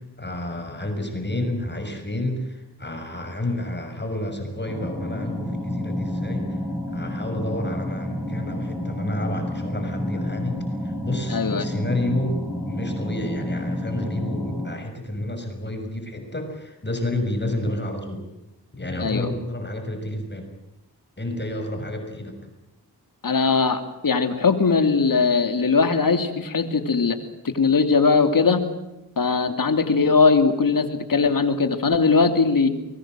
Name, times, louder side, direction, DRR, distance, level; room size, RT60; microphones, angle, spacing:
voice 1, 0.0-6.6 6.9-12.4 12.7-18.2 18.8-20.5 21.2-22.3, left 1 dB, 25° left, 5 dB, 6.6 m, -30 dB
sound 1, 4.7-14.8, left 1 dB, ahead, 7.7 m, -30 dB
voice 2, 11.3-11.7 19.0-19.3 23.2-27.2 27.4-28.6 29.2-32.7, left 4 dB, 55° left, 8 dB, 3.1 m, -20 dB
24.0 x 22.0 x 7.8 m, 0.95 s
cardioid pair, 50°, 39 cm